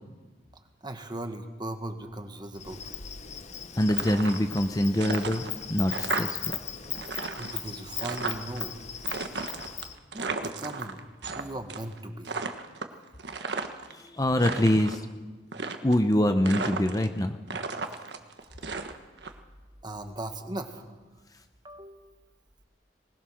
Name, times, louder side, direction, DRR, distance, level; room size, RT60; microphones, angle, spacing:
voice 1, 0.8-2.8 7.4-8.7 10.1-12.4 19.2-19.3 19.8-20.9 21.6-22.1, right 1 dB, 25° right, 6 dB, 1.6 m, -38 dB
Insect, 2.5-9.9, left 9 dB, 40° left, 1.1 m, -38 dB
voice 2, 3.8-6.6 13.9-15.0 15.8-17.4, left 1 dB, 20° left, 8 dB, 0.8 m, -25 dB
sound 1, 3.8-4.7 4.9-6.6 6.8-8.6 9.0-11.4 11.7-12.0 12.2-13.9 14.3-15.0 15.5-16.1 16.5-17.2 17.5-19.3, right 4 dB, 75° right, 1.4 m, -34 dB
21.0 x 20.5 x 6.4 m, 1.3 s
head